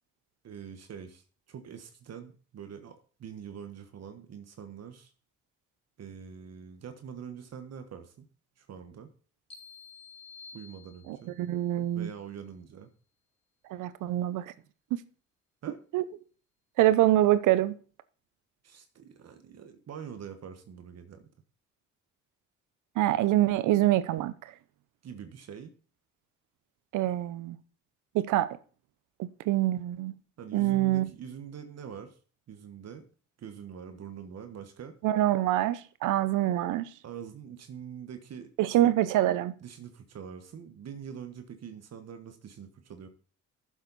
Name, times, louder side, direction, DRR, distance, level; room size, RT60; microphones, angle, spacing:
voice 1, 0.4-5.1 6.0-8.2 8.6-9.1 10.5-11.3 11.9-12.9 15.6-15.8 18.6-21.3 25.0-25.7 30.4-32.2 32.5-33.1 33.4-34.9 37.0-38.8 39.6-43.1, right 7 dB, 55° right, 1.3 m, -44 dB
sound 1, 9.5-11.4, left 5 dB, 20° left, 2.5 m, -50 dB
voice 2, 11.1-12.1 13.7-14.5 14.9-15.0 15.9-16.0 16.8-17.8 23.0-24.3 26.9-27.6 28.1-28.6 29.2-30.1 30.5-31.1 35.0-36.9 38.6-39.5, right 14 dB, 90° right, 0.7 m, -25 dB
13.5 x 7.3 x 4.1 m
cardioid pair, 90°, 30 cm